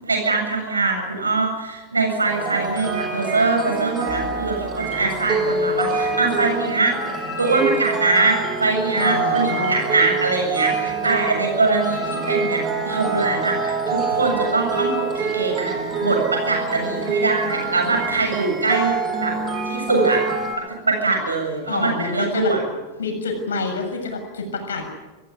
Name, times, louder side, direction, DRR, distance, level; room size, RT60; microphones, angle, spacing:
voice 1, 0.0-7.0 7.4-15.7 16.0-19.3 19.7-20.2 20.9-22.6, right 3 dB, 80° right, 2 dB, 7.7 m, -22 dB
sound 1, 2.3-20.5, right 4 dB, 25° right, 6.2 m, -25 dB
voice 2, 8.9-9.8 21.7-22.5 23.0-24.9, left 4 dB, 65° left, 4 dB, 6.9 m, -27 dB
26.0 x 15.5 x 9.8 m, 1.2 s
figure-of-eight pair, 90°, 0 cm